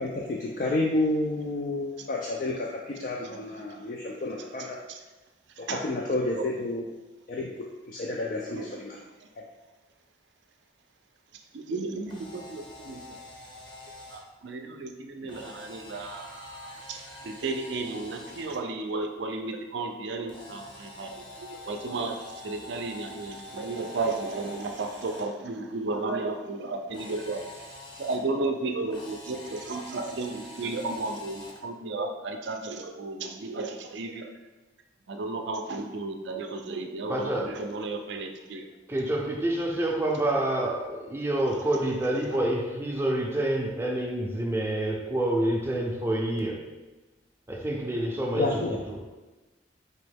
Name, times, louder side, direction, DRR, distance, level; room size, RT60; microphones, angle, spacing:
voice 1, 0.0-4.8 5.6-6.9 7.3-9.0 9.4-9.5 15.2-15.4 48.3-48.8, left 2 dB, 45° left, -2 dB, 0.4 m, -30 dB
voice 2, 11.5-13.2 14.1-21.1 21.4-27.4 28.0-34.3 35.1-38.7, right 3 dB, 70° right, 4 dB, 0.4 m, -33 dB
Camera, 12.0-14.2 15.3-18.6 20.3-25.2 26.9-28.2 28.9-31.6, left 2 dB, 25° left, 0.7 m, -45 dB
voice 3, 37.1-37.5 38.9-46.6 47.5-48.6 48.9-49.0, right 1 dB, 15° right, -1 dB, 0.5 m, -27 dB
4.1 x 3.0 x 3.4 m, 1.2 s
head